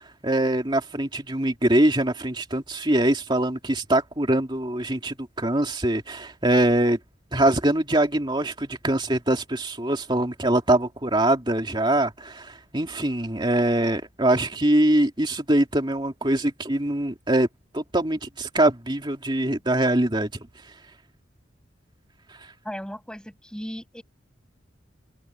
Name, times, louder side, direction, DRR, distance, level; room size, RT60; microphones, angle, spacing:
voice 1, 0.2-7.0 7.3-17.5 17.7-20.3, right 1 dB, 25° right, 2.6 m, -23 dB
voice 2, 22.6-24.0, equal, 5° left, 7.8 m, -36 dB
open air
head